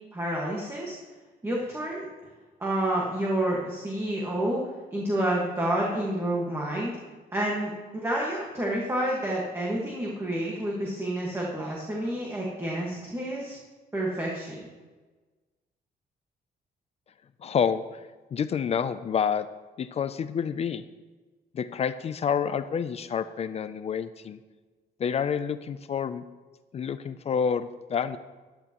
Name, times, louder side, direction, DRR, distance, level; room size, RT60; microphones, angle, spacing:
voice 1, 0.1-1.0 1.4-2.0 2.6-4.6 4.9-6.9 7.3-13.6 13.9-14.7, right 1 dB, 15° right, -4 dB, 1.6 m, -29 dB
voice 2, 17.4-17.8 18.3-19.5 19.8-20.8 21.5-24.4 25.0-26.2 26.7-28.2, left 7 dB, 35° left, 12 dB, 0.4 m, -28 dB
15.0 x 11.0 x 3.0 m, 1.3 s
cardioid pair, 175°, 18 cm